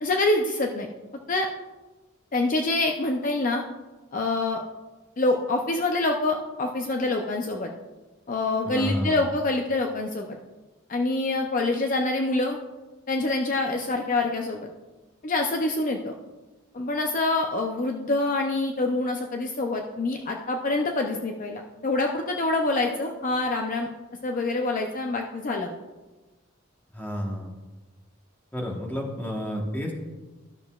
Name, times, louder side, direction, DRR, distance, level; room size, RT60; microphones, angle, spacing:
voice 1, 0.0-0.9 1.3-1.5 2.3-3.6 4.1-4.6 5.2-7.7 8.3-10.4 10.9-12.6 13.1-14.7 15.2-16.1 16.7-23.9 24.2-25.7, left 2 dB, 40° left, 2 dB, 0.5 m, -26 dB
voice 2, 8.6-9.2 26.9-27.6 28.5-29.9, equal, 10° left, -1 dB, 1.2 m, -30 dB
12.5 x 6.5 x 2.4 m, 1.2 s
head